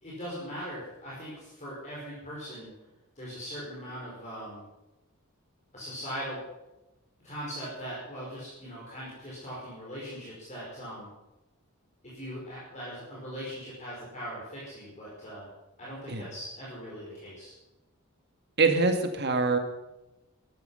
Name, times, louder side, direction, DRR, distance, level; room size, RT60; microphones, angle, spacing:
voice 1, 0.0-2.7 3.2-4.6 5.7-6.4 7.2-11.1 12.1-15.5 15.8-17.5, equal, 30° left, -7 dB, 5.0 m, -40 dB
voice 2, 18.6-19.6, right 3 dB, 50° right, 6 dB, 1.9 m, -24 dB
14.5 x 13.0 x 5.6 m, 0.98 s
head